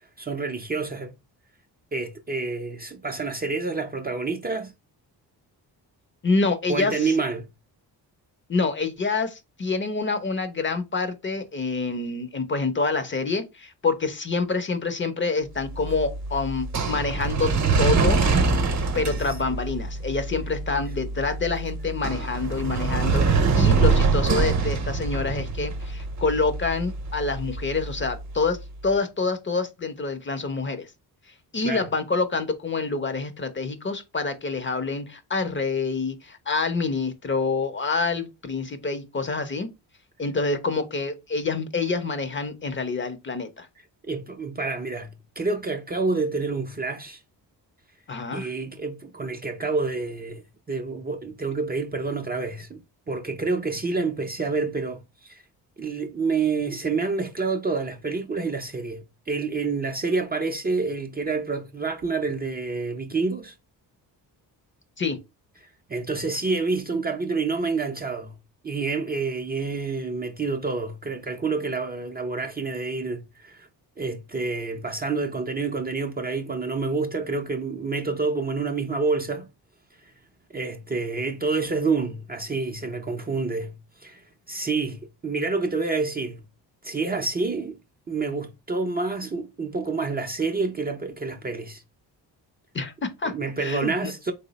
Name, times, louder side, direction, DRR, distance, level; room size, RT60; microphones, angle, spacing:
voice 1, 0.2-1.1 1.9-4.7 6.7-7.4 31.6-31.9 44.0-47.2 48.3-50.4 50.7-52.8 53.1-55.4 55.8-63.5 65.9-68.4 68.6-73.7 74.0-79.5 80.5-86.4 86.8-87.8 88.1-91.8 93.2-94.3, right 4 dB, 25° right, 0.5 m, -28 dB
voice 2, 6.2-7.2 8.5-18.2 18.9-30.9 31.5-39.7 40.2-43.7 48.1-48.5 65.0-65.2 92.7-93.3 93.6-94.1, left 4 dB, 30° left, 0.6 m, -27 dB
sound 1, 15.6-28.7, right 4 dB, 45° right, 0.8 m, -25 dB
3.2 x 2.0 x 3.9 m
cardioid pair, 65°, 41 cm